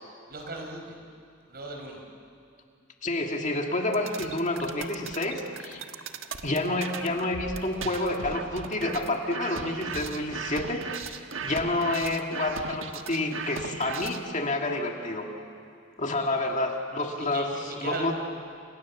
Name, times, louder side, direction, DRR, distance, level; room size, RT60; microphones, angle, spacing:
voice 1, 0.3-1.0 1.5-2.0 16.2-16.4 17.1-18.1, right 2 dB, 50° right, 2 dB, 5.2 m, -38 dB
voice 2, 3.0-5.8 6.4-15.3 16.0-17.5 17.8-18.1, left 2 dB, 35° left, 2 dB, 2.1 m, -29 dB
sound 1, 3.9-14.3, right 5 dB, 75° right, 1.3 m, -38 dB
28.5 x 27.0 x 7.3 m, 2.4 s
head